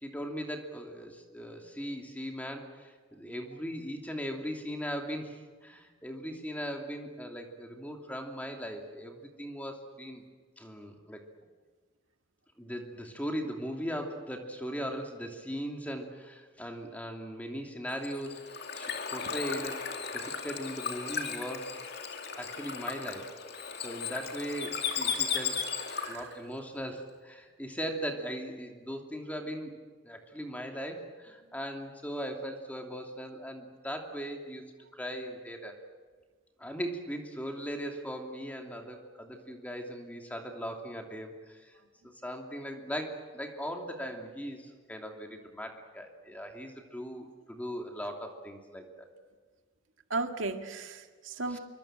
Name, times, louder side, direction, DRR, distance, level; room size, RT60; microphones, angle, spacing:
voice 1, 0.0-10.2 10.6-11.2 12.6-18.4 18.7-21.8 22.3-23.3 23.8-25.6 26.1-29.7 30.0-34.6 34.9-35.8 36.6-41.7 42.2-49.1 51.5-51.6, equal, 10° left, 2 dB, 2.8 m, -39 dB
Bird / Water, 17.9-26.3, left 6 dB, 55° left, 2.3 m, -36 dB
voice 2, 50.1-51.6, right 3 dB, 80° right, 5 dB, 1.9 m, -35 dB
26.0 x 24.0 x 7.7 m, 1.4 s
head